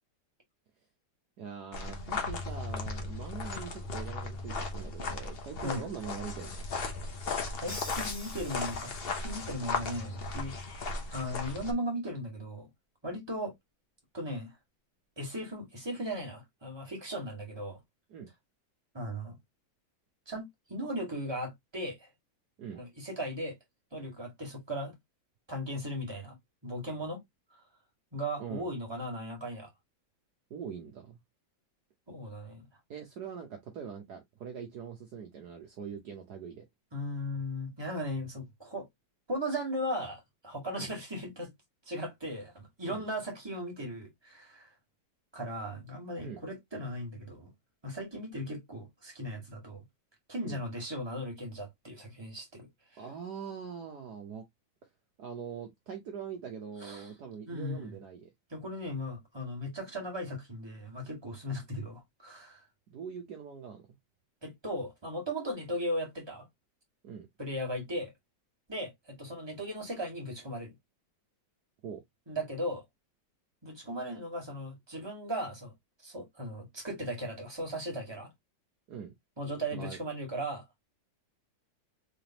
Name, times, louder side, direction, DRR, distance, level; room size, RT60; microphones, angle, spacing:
voice 1, 1.4-6.6 18.1-18.3 22.6-22.8 28.4-28.7 30.5-31.2 32.9-36.6 40.7-40.9 42.8-43.0 46.2-46.4 50.4-50.6 53.0-54.4 55.2-58.3 62.9-63.8 67.0-67.3 71.8-72.0 78.9-79.1 79.7-80.0, right 7 dB, 60° right, 1.3 m, -42 dB
sound 1, 1.7-11.7, left 3 dB, 45° left, 0.8 m, -36 dB
voice 2, 7.6-10.5 11.1-12.7 13.0-13.5 14.1-14.6 15.2-17.8 18.9-19.4 20.3-22.1 22.8-23.6 23.9-25.0 25.5-26.4 26.6-27.2 28.1-29.7 32.1-32.7 36.9-38.9 39.3-41.5 41.9-44.7 45.3-47.5 47.8-49.8 50.3-53.0 56.8-57.1 57.5-58.0 58.5-62.6 64.4-66.5 67.4-68.1 68.7-70.7 72.3-72.8 73.6-75.7 76.0-78.3 79.4-80.6, equal, 15° right, 1.9 m, -37 dB
Crash cymbal, 7.7-9.4, left 1 dB, 20° left, 0.9 m, -45 dB
3.8 x 3.5 x 2.8 m
omnidirectional pair, 2.1 m